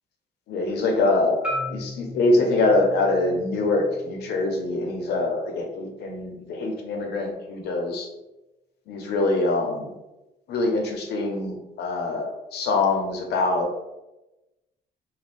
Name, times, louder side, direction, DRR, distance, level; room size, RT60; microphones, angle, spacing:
voice 1, 0.5-8.1 8.9-9.9 10.5-13.8, left 2 dB, 80° left, 2 dB, 0.7 m, -24 dB
Marimba xylophone, 1.4-5.6, left 1 dB, 5° right, 0.9 m, -37 dB
2.5 x 2.2 x 3.4 m, 0.99 s
cardioid pair, 95°, 17 cm